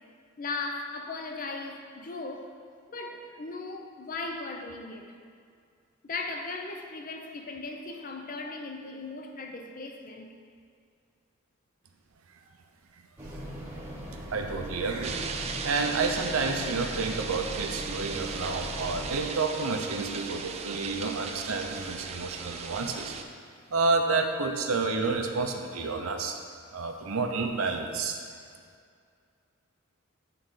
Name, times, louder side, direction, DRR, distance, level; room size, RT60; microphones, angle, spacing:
voice 1, 0.4-2.5 2.9-5.1 6.0-10.3, left 3 dB, 40° left, 3 dB, 0.5 m, -37 dB
sound 1, 13.2-19.2, equal, 10° right, 0.9 m, -40 dB
voice 2, 14.3-15.2 15.6-23.1 23.7-26.4 26.7-28.2, right 4 dB, 75° right, 4 dB, 0.6 m, -30 dB
sound 2, 15.0-23.2, right 5 dB, 30° right, 0.3 m, -37 dB
9.0 x 3.8 x 3.8 m, 2.2 s
head